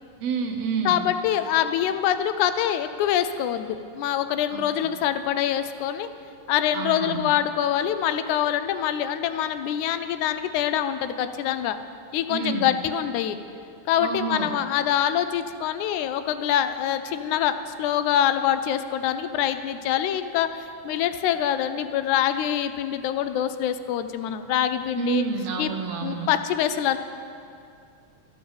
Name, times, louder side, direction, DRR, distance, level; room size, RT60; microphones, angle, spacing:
voice 1, 0.2-1.1 4.5-4.9 6.7-7.3 12.3-12.7 14.0-14.5 25.0-26.3, right 6 dB, 75° right, 5 dB, 1.8 m, -29 dB
voice 2, 0.9-6.1 6.5-11.8 12.1-13.4 13.9-25.2 25.6-25.7 26.0-27.0, left 10 dB, 80° left, 10 dB, 2.0 m, -25 dB
12.5 x 10.5 x 7.1 m, 2.5 s
omnidirectional pair, 3.5 m